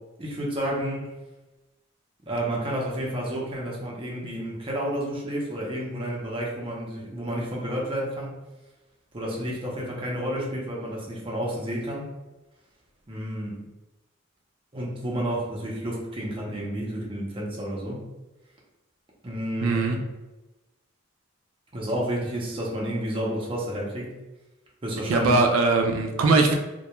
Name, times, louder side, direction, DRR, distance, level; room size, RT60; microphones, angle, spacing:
voice 1, 0.2-1.1 2.3-8.3 9.1-12.1 13.1-13.6 14.7-18.0 19.2-20.0 21.7-24.2 24.8-25.3, equal, 25° right, -3 dB, 0.6 m, -30 dB
voice 2, 19.6-20.0 25.1-26.5, right 3 dB, 90° right, 4 dB, 0.3 m, -20 dB
2.2 x 2.2 x 2.8 m, 1.0 s
head